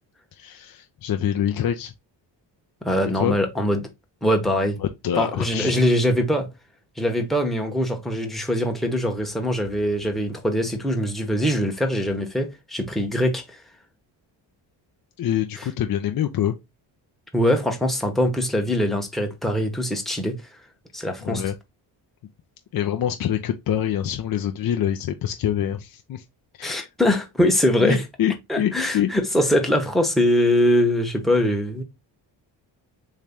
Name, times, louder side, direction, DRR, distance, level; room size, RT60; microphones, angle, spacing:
voice 1, 0.3-1.9 3.1-3.4 4.8-5.9 15.2-16.6 21.2-21.5 22.7-26.2 26.6-26.9 27.8-29.1, left 10 dB, 50° left, 0.5 m, -25 dB
voice 2, 2.8-3.9 4.2-4.8 5.2-6.5 7.0-13.6 15.6-15.7 17.3-20.4 20.9-21.4 26.6-28.0 28.5-31.8, equal, ahead, 0.9 m, -22 dB
3.1 x 2.8 x 3.5 m
cardioid pair, 65°, 46 cm